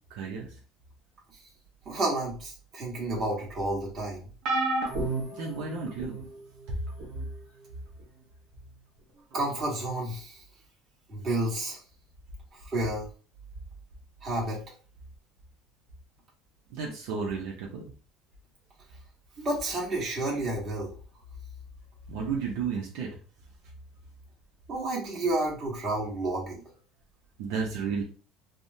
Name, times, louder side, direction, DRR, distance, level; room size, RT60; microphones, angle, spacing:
voice 1, 0.1-0.5 5.3-6.2 16.7-17.8 22.1-23.1 27.4-28.0, right 5 dB, 80° right, -1 dB, 0.7 m, -32 dB
voice 2, 1.8-4.2 9.3-10.4 11.1-11.8 12.6-13.1 14.2-14.6 19.4-20.9 24.7-26.6, right 2 dB, 35° right, -4 dB, 1.4 m, -30 dB
sound 1, 4.4-6.2 7.0-7.2 8.5-8.6, right 2 dB, 60° right, 1.0 m, -31 dB
3.4 x 2.1 x 2.7 m, 0.39 s
cardioid pair, 145°, 0 cm